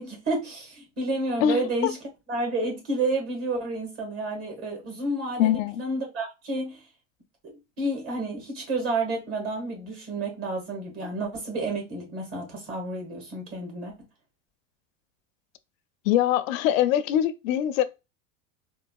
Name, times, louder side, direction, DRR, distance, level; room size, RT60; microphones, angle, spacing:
voice 1, 0.0-2.0 2.3-6.8 7.4-13.9, right 2 dB, 35° right, 1.7 m, -30 dB
voice 2, 1.4-1.9 5.4-5.8 16.0-17.8, left 11 dB, 85° left, 0.6 m, -23 dB
3.8 x 2.4 x 2.3 m
supercardioid pair, 140°, 38 cm